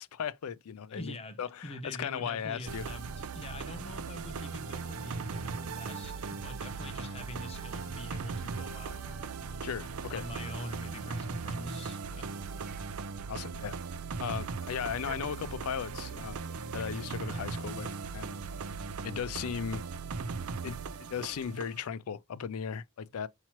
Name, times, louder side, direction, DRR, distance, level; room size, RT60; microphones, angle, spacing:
voice 1, 0.0-2.9 9.6-10.2 13.3-13.8 14.2-16.4 16.7-18.4 19.0-19.8 20.6-23.3, left 7 dB, 85° left, 0.4 m, -37 dB
voice 2, 0.9-9.0 10.1-12.3, left 1 dB, 30° left, 0.7 m, -45 dB
sound 1, 2.7-21.9, right 4 dB, 80° right, 0.5 m, -38 dB
Trumpet, 5.9-13.0, right 1 dB, ahead, 1.0 m, -61 dB
sound 2, 11.0-18.7, right 5 dB, 40° right, 0.6 m, -57 dB
5.8 x 2.9 x 2.9 m
head